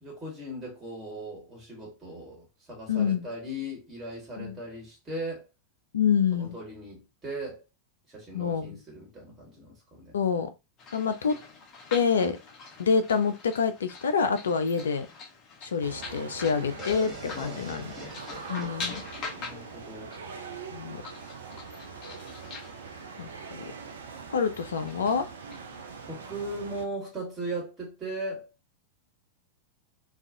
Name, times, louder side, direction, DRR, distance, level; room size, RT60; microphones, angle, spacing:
voice 1, 0.0-5.4 6.4-7.6 8.1-10.2 17.3-17.7 19.4-20.1 26.1-28.5, right 1 dB, 20° right, 1.4 m, -38 dB
voice 2, 2.9-3.3 4.4-4.6 5.9-6.6 8.3-8.8 10.1-10.5 10.9-11.4 11.9-12.4 12.8-15.1 15.6-17.9 18.5-19.0 20.7-21.0 23.2-23.6 24.3-25.3, left 6 dB, 65° left, 0.4 m, -27 dB
sound 1, 10.8-26.6, left 4 dB, 35° left, 0.7 m, -45 dB
sound 2, 15.8-26.9, right 5 dB, 65° right, 0.4 m, -43 dB
sound 3, 16.8-20.6, left 3 dB, ahead, 0.9 m, -45 dB
2.4 x 2.4 x 2.6 m
figure-of-eight pair, 90°, 0 cm